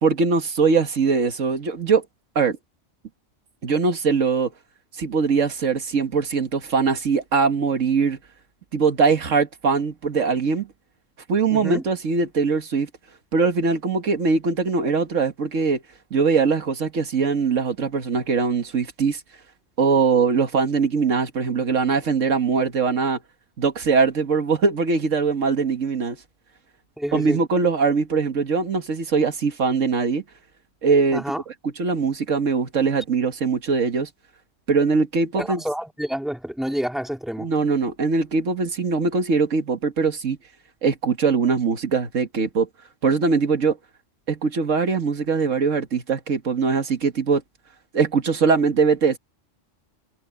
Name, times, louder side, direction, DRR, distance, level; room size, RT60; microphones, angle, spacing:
voice 1, 0.0-2.0 2.4-2.6 3.6-4.5 5.0-8.2 8.7-10.7 11.3-12.9 13.3-15.8 16.1-19.2 19.8-23.2 23.6-26.2 27.1-30.2 30.8-31.2 31.8-34.1 34.7-35.6 37.4-40.4 40.8-42.7 43.0-43.8 44.3-47.4 47.9-49.2, right 5 dB, 80° right, 1.9 m, -21 dB
voice 2, 11.5-11.9 27.0-27.4 31.1-31.4 35.4-37.5, equal, ahead, 3.5 m, -28 dB
omnidirectional pair, 1.3 m